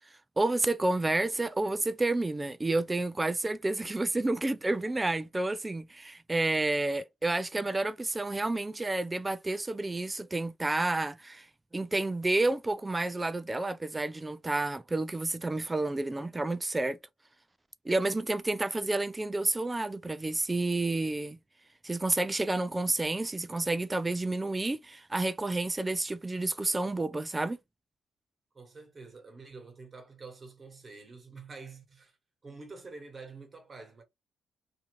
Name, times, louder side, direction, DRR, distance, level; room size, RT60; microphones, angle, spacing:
voice 1, 0.4-11.5 11.7-17.0 17.8-21.4 21.8-27.6, right 2 dB, 15° right, 0.4 m, -30 dB
voice 2, 28.5-32.2 32.4-34.0, right 4 dB, 35° right, 1.4 m, -47 dB
2.7 x 2.4 x 3.0 m
cardioid pair, 90°, 0 cm